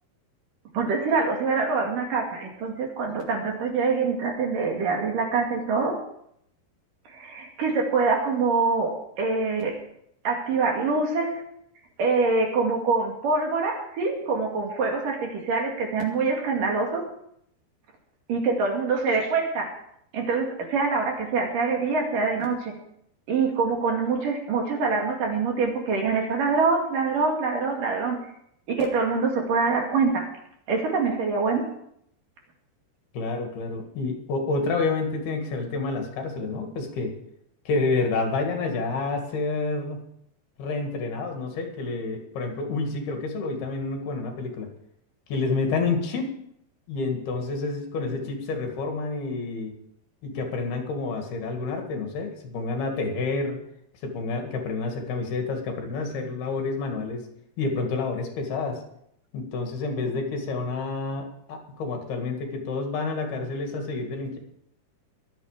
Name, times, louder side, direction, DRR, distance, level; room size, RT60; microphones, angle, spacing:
voice 1, 0.7-6.0 7.1-9.8 10.2-11.4 12.0-17.0 18.3-19.7 20.1-22.7 23.3-28.2 28.7-30.3 30.7-31.6, right 4 dB, 60° right, 1 dB, 3.8 m, -25 dB
voice 2, 33.1-37.1 37.7-40.0 40.6-44.7 45.3-46.3 46.9-49.7 50.2-53.6 54.0-57.3 57.6-58.8 59.3-64.4, left 3 dB, 70° left, 3 dB, 4.0 m, -29 dB
23.0 x 8.3 x 5.0 m, 0.72 s
omnidirectional pair, 4.6 m